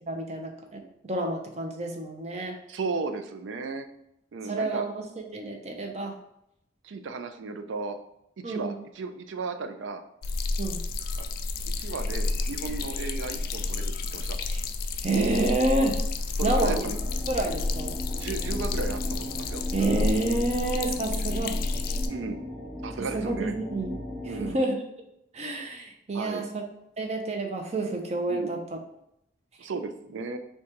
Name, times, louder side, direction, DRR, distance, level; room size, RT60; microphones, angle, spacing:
voice 1, 0.0-2.6 4.5-6.2 8.4-8.8 10.6-10.8 14.5-14.6 15.0-16.0 16.4-16.8 17.3-18.0 19.7-21.6 23.0-23.9 24.2-24.8 25.3-26.6 27.0-28.8, right 2 dB, 35° right, 3 dB, 0.6 m, -29 dB
voice 2, 2.7-3.9 4.3-4.9 6.8-8.0 8.4-10.0 11.2-11.3 11.8-14.4 16.4-17.0 18.2-19.6 22.0-22.4 22.8-23.5 24.3-24.6 26.1-26.5 28.3-28.6 29.6-30.4, right 4 dB, 85° right, 8 dB, 0.4 m, -35 dB
sound 1, 10.2-22.1, left 3 dB, 50° left, 0.3 m, -30 dB
sound 2, 17.0-24.5, left 1 dB, 5° right, 0.9 m, -37 dB
6.2 x 2.3 x 2.9 m, 0.80 s
head